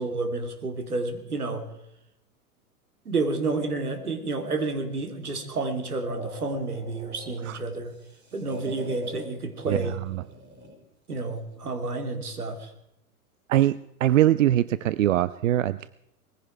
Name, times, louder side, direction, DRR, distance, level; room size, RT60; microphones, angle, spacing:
voice 1, 0.0-1.6 3.0-7.9 8.3-10.0 11.1-12.7, right 3 dB, 80° right, 6 dB, 2.9 m, -30 dB
sound 1, 3.6-5.4 5.8-7.5 7.8-9.3 10.1-10.8, right 2 dB, 25° right, 5.6 m, -44 dB
voice 2, 9.7-10.2 13.5-15.9, right 13 dB, 60° right, 17 dB, 0.6 m, -23 dB
20.5 x 15.5 x 4.6 m, 0.80 s
figure-of-eight pair, 100°, 45 cm